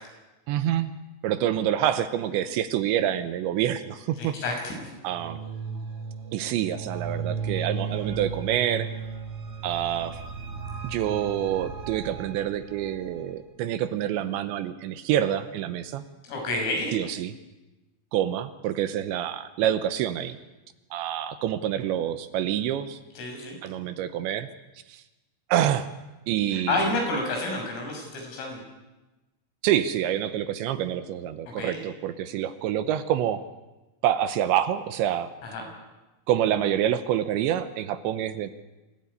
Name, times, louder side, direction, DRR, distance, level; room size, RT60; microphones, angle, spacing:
voice 1, 0.5-0.9 1.2-4.4 5.0-5.4 6.3-8.9 9.6-10.2 10.8-16.0 16.9-17.3 18.1-20.4 20.9-23.0 23.6-24.5 24.9-25.0 25.5-25.9 26.3-26.9 29.6-33.4 34.0-35.3 36.3-38.5, right 11 dB, 75° right, 11 dB, 3.0 m, -27 dB
voice 2, 4.2-4.9 16.2-17.0 23.2-23.6 26.5-28.6 31.5-31.8 35.4-35.6, left 2 dB, 90° left, 2 dB, 8.8 m, -30 dB
sound 1, 5.0-13.3, right 5 dB, 55° right, 4.5 m, -36 dB
25.5 x 17.0 x 9.8 m, 1.1 s
omnidirectional pair, 5.7 m